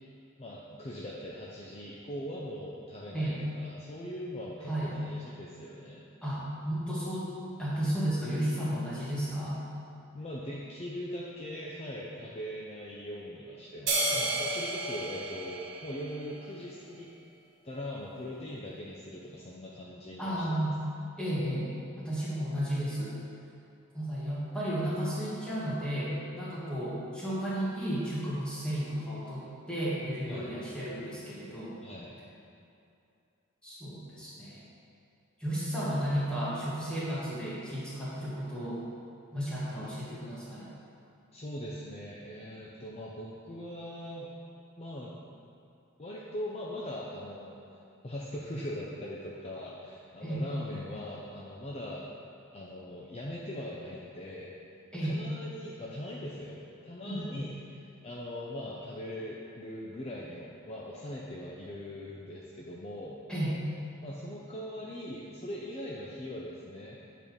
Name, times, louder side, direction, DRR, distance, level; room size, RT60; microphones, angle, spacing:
voice 1, 0.4-6.0 10.1-17.1 17.6-20.4 30.3-30.7 31.8-32.2 41.3-44.3 44.8-45.1 46.0-47.6 48.0-52.1 52.5-54.5 55.0-56.6 56.8-57.6 58.0-63.2 64.0-67.0, left 1 dB, 30° left, -4 dB, 0.6 m, -41 dB
voice 2, 6.2-7.3 7.6-9.6 14.1-14.3 20.2-20.8 21.2-21.7 22.0-23.2 23.9-31.8 33.6-34.6 35.4-38.8 39.3-40.7 50.2-50.4 54.9-55.2 57.1-57.4 63.3-63.6, equal, 5° left, -8 dB, 1.9 m, -33 dB
sound 1, 13.9-16.5, right 2 dB, 60° right, 1.6 m, -32 dB
8.6 x 4.4 x 5.2 m, 2.6 s
head